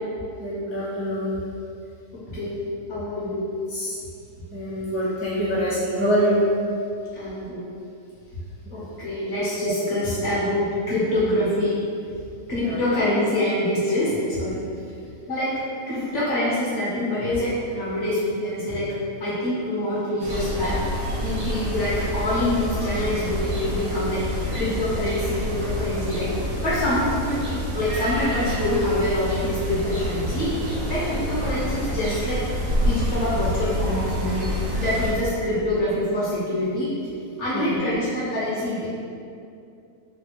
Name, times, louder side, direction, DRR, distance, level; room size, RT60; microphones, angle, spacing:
voice 1, 0.4-1.4 3.7-3.9 4.5-6.4 8.7-8.9 12.6-12.8 37.5-37.8, equal, 15° right, -11 dB, 0.4 m, -25 dB
voice 2, 2.3-3.5 5.4-5.5 7.2-7.6 8.7-11.7 12.5-14.6 15.2-15.5 15.9-18.9 19.2-20.7 21.2-24.2 24.5-26.3 26.6-27.4 27.7-30.5 30.9-32.4 32.8-34.5 34.8-36.9 37.4-38.9, left 1 dB, 60° left, -9 dB, 0.8 m, -25 dB
sound 1, 20.2-35.1, equal, 70° right, 1.0 m, -27 dB
3.3 x 2.2 x 2.8 m, 2.5 s
omnidirectional pair, 1.7 m